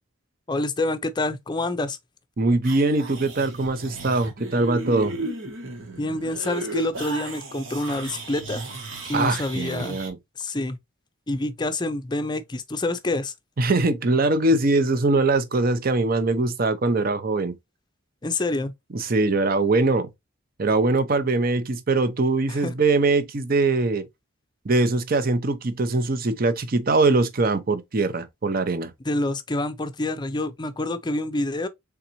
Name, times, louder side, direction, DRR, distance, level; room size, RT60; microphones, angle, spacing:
voice 1, 0.5-2.0 6.0-8.6 9.1-10.0 10.4-10.8 11.3-13.3 18.2-18.7 22.5-22.7 29.1-31.7, left 2 dB, 20° left, 0.5 m, -27 dB
voice 2, 2.4-5.2 9.1-10.2 13.6-17.6 18.9-20.1 20.6-24.1 24.6-28.9, right 3 dB, 45° right, 0.6 m, -22 dB
sound 1, 2.6-10.1, right 2 dB, 75° right, 1.4 m, -35 dB
3.9 x 3.4 x 2.9 m
head